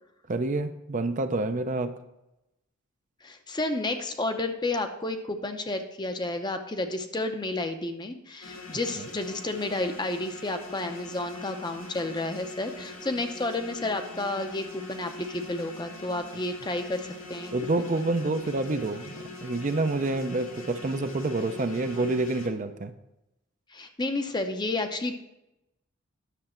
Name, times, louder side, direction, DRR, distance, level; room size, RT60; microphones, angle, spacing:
voice 1, 0.3-2.0 9.0-9.1 17.5-22.9, right 2 dB, 35° right, 9 dB, 0.5 m, -28 dB
voice 2, 3.2-17.5 17.8-17.9 23.7-25.1, left 2 dB, 20° left, 7 dB, 0.6 m, -31 dB
sound 1, 8.4-22.5, left 2 dB, 70° left, 1.7 m, -43 dB
10.0 x 6.8 x 4.3 m, 0.92 s
head